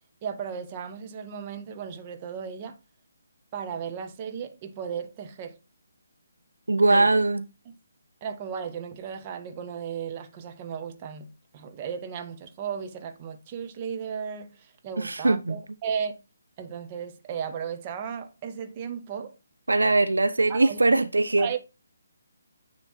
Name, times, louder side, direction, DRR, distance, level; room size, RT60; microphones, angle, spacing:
voice 1, 0.2-2.8 3.5-5.6 6.9-7.1 7.7-7.8 8.2-16.2 16.6-19.4 20.5-20.8 21.4-21.6, right 7 dB, 25° right, 0.9 m, -35 dB
voice 2, 6.7-7.4 15.0-15.6 19.7-21.5, right 2 dB, 70° right, 0.5 m, -21 dB
9.1 x 3.1 x 4.2 m
figure-of-eight pair, 145°, 0 cm